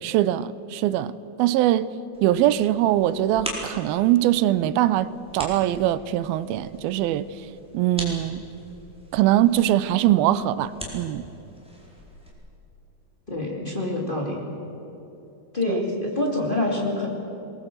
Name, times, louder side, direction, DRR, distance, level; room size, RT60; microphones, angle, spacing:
voice 1, 0.0-1.1 1.4-1.9 2.2-5.1 5.3-7.3 7.7-8.4 9.1-11.3, right 13 dB, 90° right, 2.5 m, -22 dB
sound 1, 2.1-12.3, equal, ahead, 3.9 m, -41 dB
voice 2, 13.3-14.4 15.5-17.1, left 1 dB, 15° left, 2.3 m, -26 dB
22.0 x 20.0 x 7.9 m
omnidirectional pair, 4.2 m